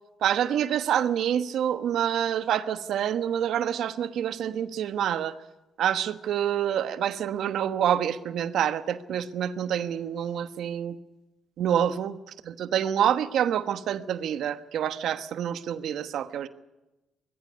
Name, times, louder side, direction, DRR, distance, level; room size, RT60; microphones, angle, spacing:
voice 1, 0.2-5.4 5.8-11.0 11.6-12.2 12.4-16.5, right 9 dB, 75° right, 12 dB, 1.2 m, -27 dB
21.0 x 14.5 x 9.9 m, 1.0 s
cardioid pair, 90°, 0 cm